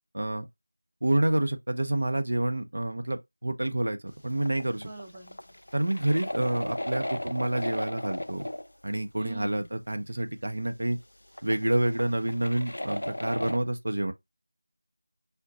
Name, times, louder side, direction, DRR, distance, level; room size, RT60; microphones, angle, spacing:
voice 1, 0.1-0.4 1.0-4.0 4.2-4.9 5.7-8.5 8.8-11.0 11.4-14.1, right 1 dB, 65° right, 0.6 m, -28 dB
sound 1, 4.3-8.7 9.6-9.7 9.9-10.0 10.9-11.0 11.3-13.6, left 1 dB, 85° left, 0.3 m, -36 dB
voice 2, 4.8-5.4 9.2-9.7, equal, 10° right, 0.7 m, -42 dB
3.9 x 2.2 x 3.9 m
figure-of-eight pair, 175°, 0 cm